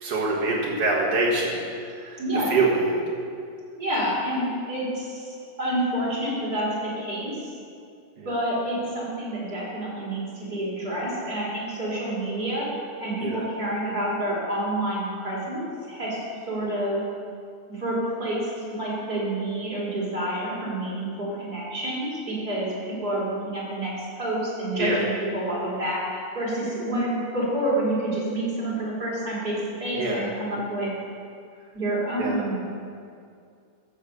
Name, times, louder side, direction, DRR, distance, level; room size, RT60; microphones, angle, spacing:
voice 1, 0.0-2.2 2.5-3.0 8.2-8.3 13.2-13.4 24.8-25.0 29.9-30.3 32.2-32.4, right 2 dB, 55° right, -3 dB, 1.7 m, -25 dB
voice 2, 2.2-2.5 3.8-7.5 8.2-12.7 13.0-17.0 17.7-22.7 23.0-30.9 31.7-32.6, right 1 dB, 25° right, -6 dB, 3.5 m, -28 dB
14.5 x 6.5 x 6.8 m, 2.3 s
omnidirectional pair, 4.9 m